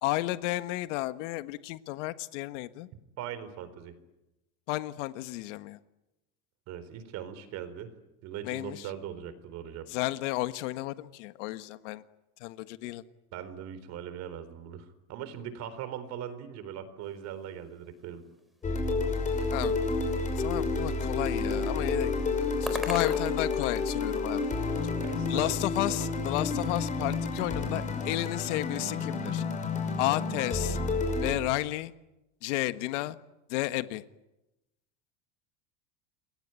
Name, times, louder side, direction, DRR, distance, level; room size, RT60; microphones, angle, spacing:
voice 1, 0.0-2.9 4.7-5.8 8.4-8.9 9.9-12.0 12.4-13.0 19.5-19.8 20.4-22.1 22.6-24.5 25.3-29.4 30.0-30.8 31.2-31.9 32.4-33.2 33.5-34.0, left 17 dB, 75° left, 11 dB, 1.5 m, -32 dB
voice 2, 3.2-3.9 6.7-7.9 8.2-9.9 13.3-18.2 25.0-25.6, right 9 dB, 45° right, 13 dB, 4.0 m, -40 dB
sound 1, 17.0-24.3, equal, ahead, 4.2 m, -45 dB
sound 2, 18.6-31.3, left 3 dB, 20° left, 5.9 m, -30 dB
28.5 x 22.0 x 9.0 m, 0.95 s
cardioid pair, 155°, 37 cm